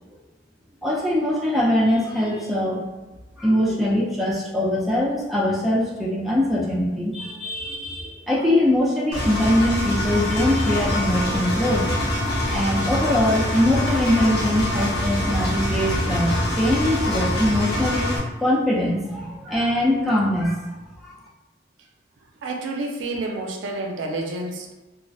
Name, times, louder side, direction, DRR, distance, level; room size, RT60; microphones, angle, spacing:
voice 1, 0.8-2.8 3.4-11.8 12.5-18.1 18.4-20.6 21.0-21.2, left 1 dB, ahead, -5 dB, 0.4 m, -22 dB
Engine, 9.1-18.2, left 1 dB, 55° left, 0.6 m, -24 dB
voice 2, 22.4-24.7, right 2 dB, 80° right, 2 dB, 0.4 m, -29 dB
2.3 x 2.0 x 2.5 m, 1.1 s
head